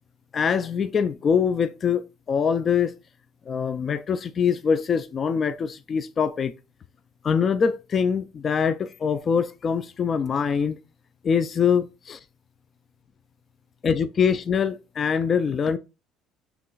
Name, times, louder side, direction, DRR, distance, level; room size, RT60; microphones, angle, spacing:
voice 1, 0.3-2.9 3.5-6.6 7.2-10.8 11.2-12.2 13.8-15.8, left 6 dB, 40° left, 0.4 m, -24 dB
5.7 x 3.0 x 2.3 m
cardioid pair, 105°, 0 cm